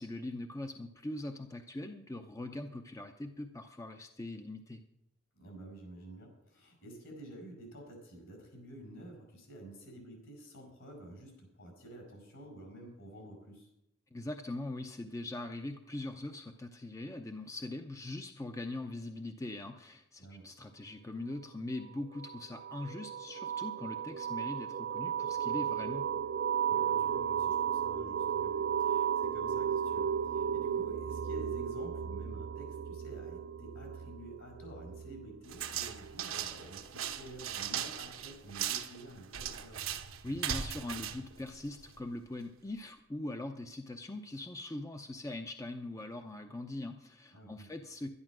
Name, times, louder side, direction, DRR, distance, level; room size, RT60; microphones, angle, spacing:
voice 1, 0.0-4.8 14.1-26.1 40.2-48.1, left 2 dB, 15° left, 6 dB, 0.6 m, -41 dB
voice 2, 5.3-13.7 20.2-20.5 26.7-39.8 47.3-47.7, right 1 dB, 65° left, 4 dB, 5.5 m, -50 dB
sound 1, 22.2-36.6, right 8 dB, 50° right, 0.4 m, -34 dB
sound 2, 35.5-42.1, right 9 dB, 80° right, 1.0 m, -38 dB
11.5 x 11.0 x 6.1 m, 0.83 s
head